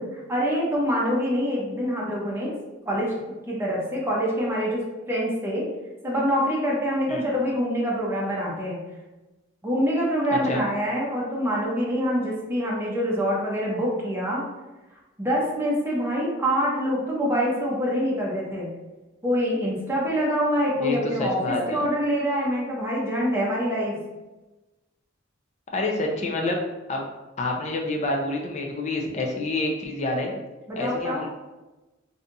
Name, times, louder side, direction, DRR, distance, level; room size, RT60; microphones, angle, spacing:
voice 1, 0.0-2.6 2.9-3.1 3.5-4.8 5.1-5.7 6.0-8.8 9.6-14.4 15.2-18.7 19.2-24.0 30.7-31.2, equal, 10° right, -5 dB, 0.7 m, -25 dB
voice 2, 10.3-10.6 20.8-21.8 25.7-26.6 26.9-27.0 27.4-30.3 30.8-31.3, left 2 dB, 35° left, 0 dB, 0.5 m, -27 dB
2.7 x 2.4 x 3.9 m, 1.1 s
head